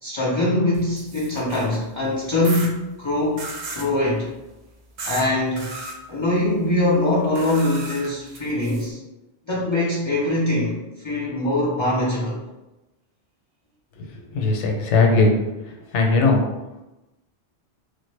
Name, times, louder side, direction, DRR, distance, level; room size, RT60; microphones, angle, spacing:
voice 1, 0.0-3.5 3.7-4.3 5.1-5.7 6.1-9.0 9.5-10.8 11.0-12.4, left 1 dB, 40° left, -5 dB, 0.4 m, -22 dB
sound 1, 0.7-1.8 2.4-2.7 3.4-3.9 5.0-5.3 5.6-5.9 7.3-8.9, right 3 dB, 60° right, 0.7 m, -35 dB
voice 2, 14.3-15.4 15.9-16.4, left 3 dB, 85° left, 1 dB, 0.9 m, -18 dB
3.4 x 2.1 x 3.2 m, 1.0 s
omnidirectional pair, 1.2 m